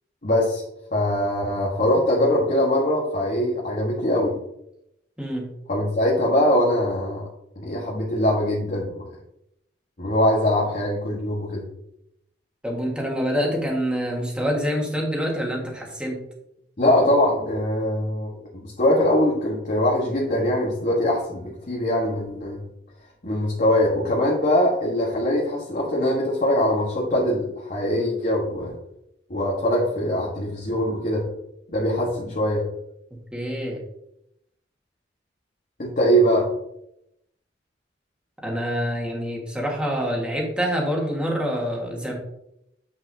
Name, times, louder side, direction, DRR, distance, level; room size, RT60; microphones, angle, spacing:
voice 1, 0.2-0.6 0.9-4.3 5.7-7.2 7.6-9.1 10.0-11.6 16.8-18.3 18.8-22.6 23.2-28.7 29.3-31.2 31.7-32.6 35.8-36.5, left 1 dB, 50° left, -4 dB, 1.4 m, -22 dB
voice 2, 12.6-16.2 33.3-33.8 38.4-42.1, equal, 5° right, -2 dB, 1.7 m, -26 dB
8.0 x 6.1 x 2.8 m, 0.81 s
head